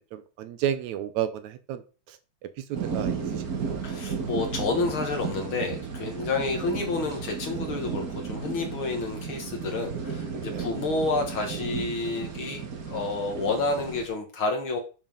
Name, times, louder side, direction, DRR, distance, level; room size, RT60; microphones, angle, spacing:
voice 1, 0.1-1.8 2.1-2.2 2.6-3.8 10.5-10.6, right 10 dB, 75° right, 12 dB, 1.9 m, -32 dB
sound 1, 2.7-14.1, right 6 dB, 45° right, 1.2 m, -34 dB
voice 2, 3.8-14.8, left 3 dB, 50° left, 4 dB, 1.8 m, -29 dB
7.2 x 5.4 x 5.4 m, 0.35 s
omnidirectional pair, 3.5 m